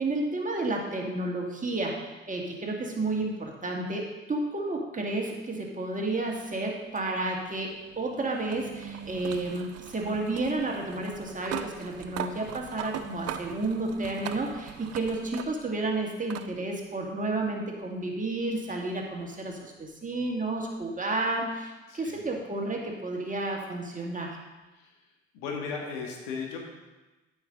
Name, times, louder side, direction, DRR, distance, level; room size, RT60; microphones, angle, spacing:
voice 1, 0.0-24.4, right 2 dB, 25° right, 0 dB, 2.0 m, -31 dB
sound 1, 6.9-15.8 16.3-16.5 17.8-17.9 20.8-20.9, right 10 dB, 45° right, 0.7 m, -40 dB
voice 2, 21.9-22.3 24.7-25.0 25.3-26.6, left 5 dB, 65° left, 1 dB, 1.8 m, -36 dB
13.5 x 5.7 x 3.9 m, 1.1 s
figure-of-eight pair, 45°, 34 cm